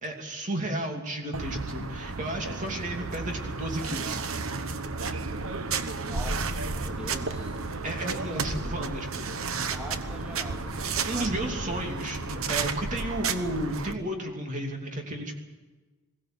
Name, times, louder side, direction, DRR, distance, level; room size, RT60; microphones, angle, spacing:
voice 1, 0.0-4.2 7.8-9.8 11.0-15.4, right 1 dB, 35° right, 2 dB, 2.8 m, -33 dB
sound 1, 1.3-13.9, right 4 dB, 70° right, 1.1 m, -32 dB
voice 2, 2.4-3.4 5.8-7.7 9.5-10.8 11.1-11.9, equal, 5° right, 1 dB, 2.3 m, -44 dB
21.5 x 16.5 x 7.8 m, 1.3 s
head